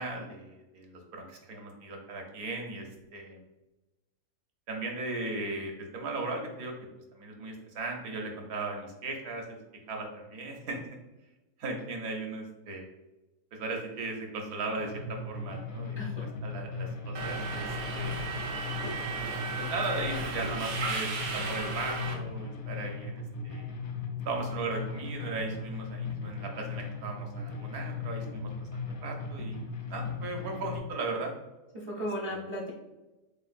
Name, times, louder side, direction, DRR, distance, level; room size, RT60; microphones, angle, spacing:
voice 1, 0.0-2.9 3.1-3.4 4.7-6.7 7.1-9.4 9.9-10.8 11.6-12.8 13.5-18.2 19.6-23.7 24.3-31.3 32.3-32.4, right 3 dB, 65° right, 2 dB, 1.2 m, -37 dB
sound 1, 14.8-30.8, left 4 dB, 80° left, 0.6 m, -37 dB
Subway metro underground, 17.1-22.1, right 4 dB, 80° right, 1.3 m, -35 dB
voice 2, 31.7-32.7, equal, 40° right, -4 dB, 0.4 m, -35 dB
6.5 x 2.5 x 2.5 m, 1.0 s
omnidirectional pair, 1.8 m